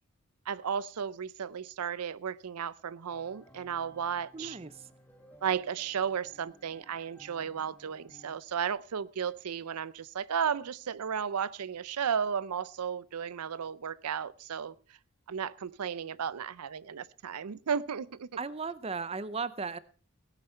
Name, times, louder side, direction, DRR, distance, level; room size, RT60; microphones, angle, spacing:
voice 1, 0.5-4.6 5.4-14.7 15.3-18.3, right 7 dB, 90° right, 0.5 m, -34 dB
sound 1, 3.1-8.4, right 1 dB, 10° left, 1.5 m, -58 dB
voice 2, 4.3-4.9 18.4-19.8, right 4 dB, 25° right, 0.5 m, -36 dB
18.0 x 10.0 x 4.4 m
head